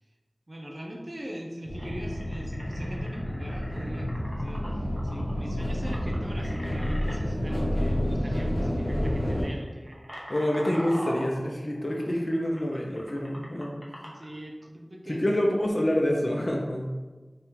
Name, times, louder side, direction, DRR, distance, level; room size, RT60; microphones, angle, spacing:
voice 1, 0.5-4.1 4.4-10.0 13.8-15.4, equal, 40° right, 0 dB, 0.5 m, -41 dB
sound 1, 1.7-9.4, equal, 75° left, 0.8 m, -29 dB
sound 2, 1.7-7.2 8.2-8.4 8.7-9.0 9.5-14.3, equal, 5° left, 0.9 m, -42 dB
voice 2, 10.3-13.8 15.1-16.9, equal, 45° left, -1 dB, 0.6 m, -27 dB
5.3 x 2.4 x 3.2 m, 1.3 s
wide cardioid pair, 55°, 0 cm